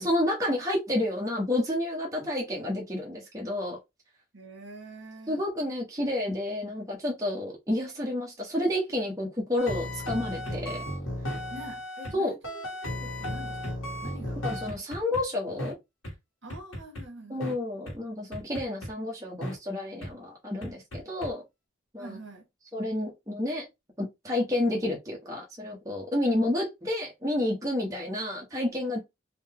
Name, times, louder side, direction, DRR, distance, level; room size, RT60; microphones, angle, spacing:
voice 1, 0.0-3.8 5.3-10.8 12.1-12.4 14.4-15.8 17.3-21.4 21.9-22.2 22.7-23.7 24.0-29.0, left 1 dB, 15° right, 0.8 m, -30 dB
voice 2, 4.3-5.4 11.5-12.6 13.0-14.6 16.4-17.5 22.0-22.5, right 1 dB, 65° right, 1.4 m, -45 dB
sound 1, 9.6-12.1 12.4-15.2 15.6-15.7 16.0-16.1 16.5-17.0 17.4-17.5 17.9-18.0 18.3-18.9 19.4-19.5 20.0-20.1 20.6-21.3, left 1 dB, 85° left, 1.4 m, -35 dB
3.7 x 2.1 x 3.4 m
head